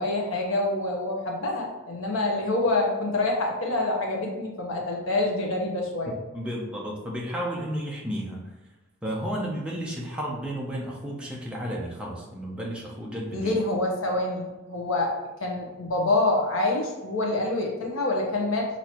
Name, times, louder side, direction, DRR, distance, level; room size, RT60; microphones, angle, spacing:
voice 1, 0.0-6.2 13.3-18.8, left 2 dB, 75° left, 0 dB, 1.0 m, -26 dB
voice 2, 6.1-8.5 9.0-13.5, equal, 5° right, -3 dB, 0.7 m, -32 dB
6.0 x 2.8 x 3.0 m, 1.1 s
head